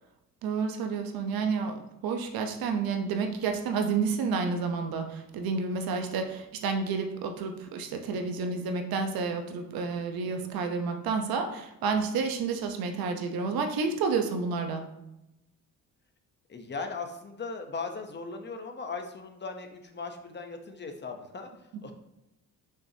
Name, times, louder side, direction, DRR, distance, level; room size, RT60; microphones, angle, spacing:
voice 1, 0.4-14.9, right 5 dB, 90° right, 5 dB, 1.0 m, -30 dB
voice 2, 10.2-10.5 16.5-21.9, left 4 dB, 30° left, 5 dB, 0.9 m, -38 dB
6.2 x 5.9 x 2.9 m, 0.90 s
cardioid pair, 105°, 35 cm